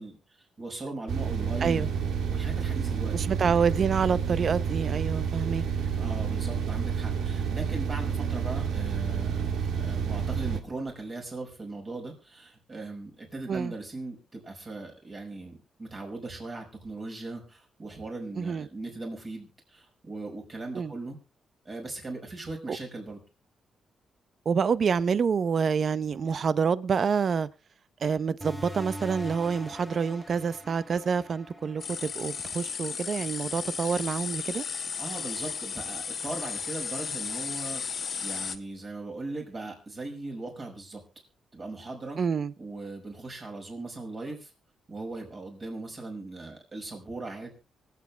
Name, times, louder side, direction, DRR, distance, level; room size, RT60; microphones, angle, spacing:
voice 1, 0.0-1.9 2.3-3.1 6.0-21.2 21.6-23.2 35.0-41.0 41.5-42.2 42.6-44.5 44.9-47.5, right 2 dB, 35° right, 5.7 m, -39 dB
sound 1, 1.1-10.6, right 7 dB, 80° right, 1.7 m, -29 dB
voice 2, 3.1-5.6 13.5-13.7 18.4-18.7 20.7-20.9 22.7-22.8 24.5-27.5 28.0-34.6 42.2-42.5, right 6 dB, 50° right, 0.7 m, -27 dB
sound 2, 28.4-33.6, equal, 5° right, 1.5 m, -43 dB
sound 3, 31.8-38.6, left 6 dB, 50° left, 1.1 m, -34 dB
24.5 x 8.6 x 3.3 m
cardioid pair, 115°, 0 cm